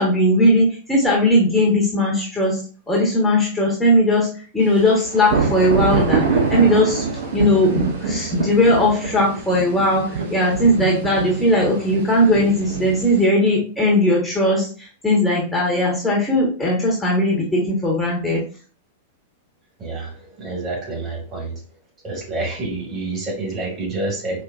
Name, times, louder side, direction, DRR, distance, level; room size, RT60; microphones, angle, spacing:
voice 1, 0.0-2.6 2.9-7.0 7.3-18.4, left 1 dB, 5° left, -4 dB, 1.2 m, -18 dB
sound 1, 4.7-13.2, right 4 dB, 60° right, 0.8 m, -25 dB
voice 2, 19.8-21.6 22.0-24.4, right 2 dB, 25° right, -1 dB, 2.0 m, -28 dB
4.6 x 2.9 x 2.5 m, 0.39 s
figure-of-eight pair, 95°, 0 cm